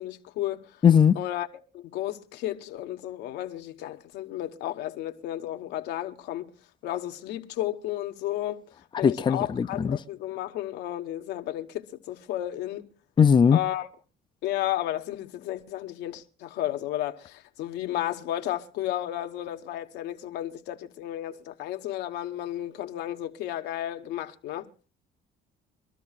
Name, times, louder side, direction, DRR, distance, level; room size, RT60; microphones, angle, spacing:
voice 1, 0.0-0.8 1.1-1.5 1.7-6.5 6.8-8.7 9.0-12.9 13.5-13.9 14.4-24.7, left 13 dB, 85° left, 1.1 m, -33 dB
voice 2, 0.8-1.2 9.0-10.0 13.2-13.6, left 7 dB, 25° left, 0.5 m, -19 dB
24.5 x 13.0 x 2.4 m
cardioid pair, 110°, 17 cm